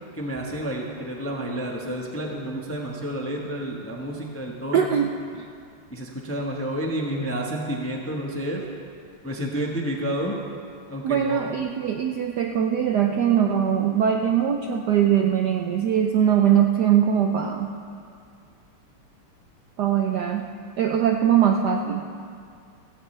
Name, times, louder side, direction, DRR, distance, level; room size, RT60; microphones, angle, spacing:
voice 1, 0.1-4.9 5.9-8.7 9.2-10.4 10.9-11.6, right 1 dB, 10° left, -1 dB, 0.7 m, -30 dB
voice 2, 4.7-5.1 5.4-5.5 11.0-17.8 19.8-20.5 20.8-22.1, right 9 dB, 70° right, 3 dB, 1.0 m, -21 dB
16.0 x 16.0 x 3.3 m, 2.4 s
omnidirectional pair, 2.4 m